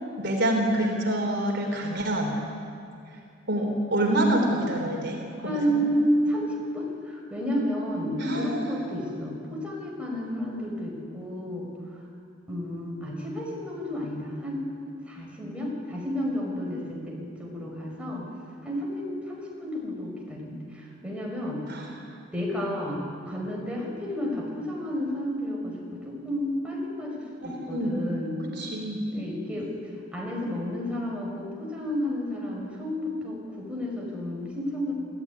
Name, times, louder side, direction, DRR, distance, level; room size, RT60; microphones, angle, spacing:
voice 1, 0.2-2.4 3.5-5.8 8.2-8.8 21.7-21.9 27.5-28.1 28.5-29.0, right 1 dB, 60° right, 2 dB, 3.6 m, -27 dB
voice 2, 5.4-11.7 12.5-14.7 15.1-18.3 18.6-21.6 22.3-28.4 29.1-29.7 30.1-34.9, equal, 5° right, -2 dB, 5.6 m, -31 dB
26.5 x 15.0 x 9.7 m, 2.4 s
head